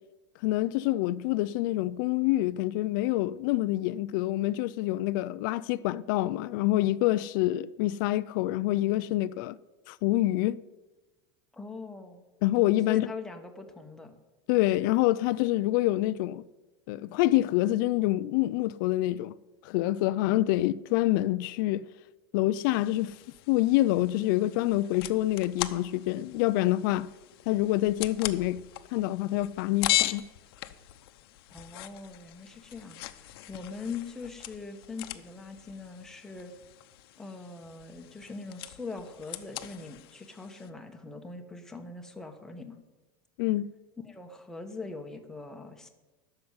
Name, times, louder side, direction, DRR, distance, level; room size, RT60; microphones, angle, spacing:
voice 1, 0.4-9.6 9.9-10.6 12.4-13.1 14.5-16.4 16.9-19.3 19.6-21.8 22.3-23.1 23.5-27.1 27.5-28.6 28.9-30.2 43.4-43.7, left 16 dB, 55° left, 0.4 m, -26 dB
voice 2, 11.5-12.2 12.9-14.2 31.5-36.5 37.2-42.8 44.0-45.9, left 4 dB, 5° left, 1.1 m, -42 dB
sound 1, 22.7-40.7, left 15 dB, 80° left, 0.9 m, -39 dB
12.0 x 6.8 x 9.5 m
supercardioid pair, 170°, 12 cm